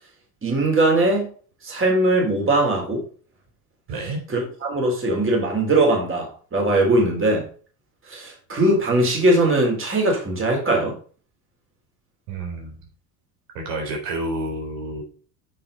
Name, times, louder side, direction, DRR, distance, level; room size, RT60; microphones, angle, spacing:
voice 1, 0.4-1.3 1.6-3.1 4.3-7.5 8.1-11.0, right 2 dB, 25° right, 4.0 m, -20 dB
voice 2, 3.9-4.2 12.3-12.9 13.5-15.0, right 2 dB, 70° right, 4.2 m, -29 dB
9.2 x 6.5 x 4.2 m
supercardioid pair, 95°, 47 cm